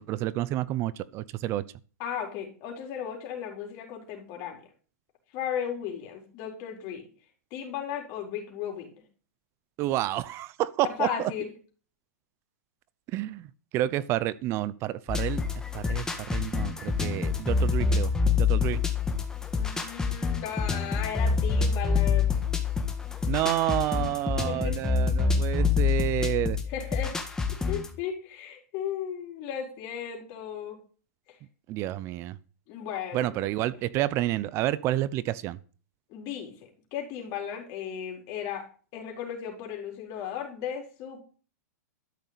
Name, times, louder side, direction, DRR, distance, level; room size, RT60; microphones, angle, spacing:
voice 1, 0.0-1.6 9.8-11.3 13.1-13.5 13.7-15.4 15.7-18.8 23.3-26.6 31.7-32.4 33.1-35.6, right 14 dB, 30° right, 0.6 m, -29 dB
voice 2, 2.0-4.6 5.3-7.0 7.5-8.9 11.0-11.5 19.5-22.4 24.4-24.7 26.7-27.2 27.7-30.8 32.7-33.5 36.1-36.5 36.9-38.7 38.9-41.2, left 8 dB, 35° left, 4.3 m, -35 dB
sound 1, 15.1-27.9, left 5 dB, 5° left, 1.5 m, -27 dB
12.5 x 6.7 x 8.3 m
hypercardioid pair, 150°, 9 cm